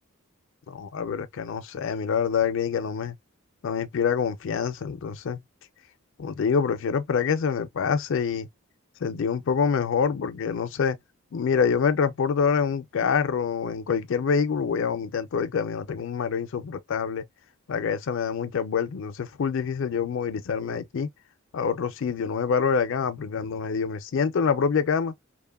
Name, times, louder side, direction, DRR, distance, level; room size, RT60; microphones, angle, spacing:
voice 1, 0.7-3.2 3.6-5.4 6.2-8.5 9.0-11.0 11.3-17.3 17.7-21.1 21.5-25.1, left 6 dB, 60° left, 0.4 m, -26 dB
2.9 x 2.1 x 2.2 m
head